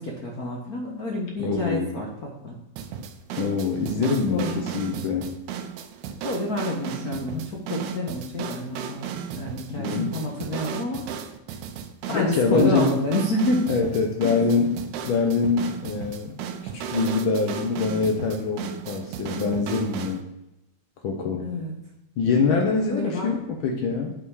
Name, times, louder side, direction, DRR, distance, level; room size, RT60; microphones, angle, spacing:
voice 1, 0.0-2.6 3.9-4.6 6.2-11.1 11.5-11.6 12.1-13.6 14.2-14.4 21.4-21.8 22.9-23.4, left 1 dB, 70° left, -1 dB, 0.8 m, -28 dB
voice 2, 1.4-1.9 3.4-5.4 9.7-10.4 12.1-13.0 13.7-14.8 15.0-16.4 16.9-20.2 21.0-21.5 22.2-24.1, left 4 dB, 90° left, 2 dB, 1.1 m, -24 dB
sound 1, 2.8-20.2, right 7 dB, 80° right, 2.1 m, -35 dB
8.3 x 5.8 x 4.7 m, 0.95 s
omnidirectional pair, 3.5 m